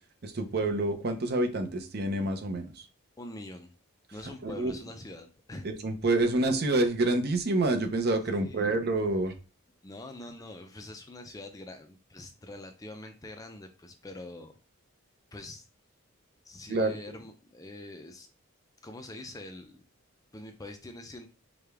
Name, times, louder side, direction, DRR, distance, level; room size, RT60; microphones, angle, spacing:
voice 1, 0.2-2.8 4.1-4.9 5.6-9.3 16.7-16.9, right 2 dB, 50° right, 6 dB, 0.6 m, -28 dB
voice 2, 3.2-3.7 4.1-5.7 8.3-8.7 9.8-14.5 15.3-15.6 16.4-18.3 18.8-19.8 20.3-21.3, left 1 dB, 15° left, 5 dB, 0.4 m, -44 dB
4.9 x 2.3 x 3.4 m, 0.34 s
head